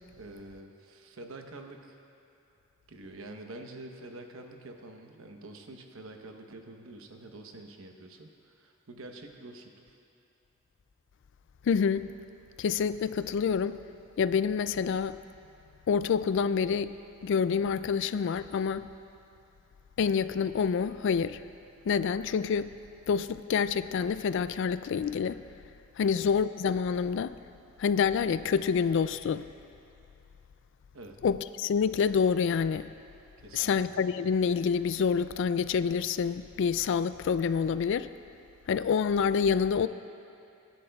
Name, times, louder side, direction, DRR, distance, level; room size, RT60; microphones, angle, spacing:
voice 1, 0.2-2.0 2.9-10.0 26.0-26.2 30.9-31.2 33.4-33.7, right 2 dB, 85° right, 4 dB, 1.0 m, -47 dB
voice 2, 11.6-12.1 12.6-13.8 14.2-15.2 15.9-16.9 17.2-18.9 20.0-21.4 21.9-22.7 23.1-25.4 26.0-27.3 27.8-29.4 31.2-32.9 33.5-38.1 38.7-39.9, left 6 dB, 60° left, 14 dB, 0.3 m, -27 dB
24.5 x 10.5 x 2.3 m, 2.7 s
head